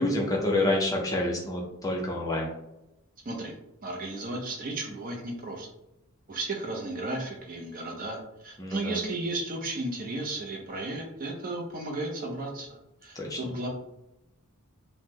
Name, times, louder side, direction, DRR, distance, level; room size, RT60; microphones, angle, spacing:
voice 1, 0.0-2.5 8.6-9.0 13.2-13.4, left 1 dB, 15° left, -2 dB, 0.4 m, -28 dB
voice 2, 3.8-5.7 6.3-13.7, right 2 dB, 40° right, 1 dB, 0.5 m, -34 dB
2.9 x 2.0 x 3.5 m, 0.89 s
head